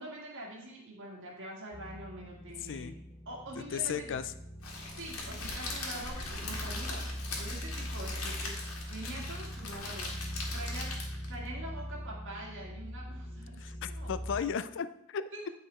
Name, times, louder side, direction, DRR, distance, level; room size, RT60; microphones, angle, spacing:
voice 1, 0.0-3.0 3.2-4.2 4.7-7.1 7.4-11.0 11.3-13.6 13.9-14.1 15.3-15.5, right 1 dB, 60° right, -3 dB, 1.7 m, -45 dB
sound 1, 1.7-14.4, equal, 25° left, 2.0 m, -41 dB
voice 2, 2.6-3.0 3.5-4.2 13.6-15.2, left 7 dB, 60° left, 13 dB, 0.4 m, -35 dB
Crackle, 4.6-11.3, left 3 dB, 75° left, 1.8 m, -40 dB
9.1 x 4.9 x 4.3 m, 0.78 s
head